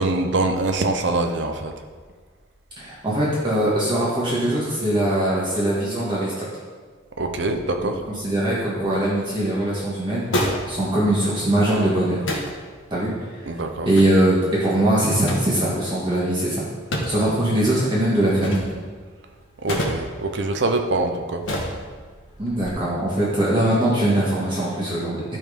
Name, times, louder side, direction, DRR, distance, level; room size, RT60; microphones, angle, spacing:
voice 1, 0.0-1.7 7.2-8.0 13.5-13.9 19.6-21.4, right 2 dB, 65° right, 5 dB, 0.7 m, -24 dB
voice 2, 2.8-6.5 7.8-7.9 8.1-12.2 12.9-13.1 13.8-16.7 17.0-18.6 22.4-25.4, right 1 dB, 25° right, -7 dB, 1.6 m, -21 dB
sound 1, 8.7-22.7, equal, 85° left, 1.5 m, -33 dB
12.0 x 4.5 x 5.2 m, 1.5 s
head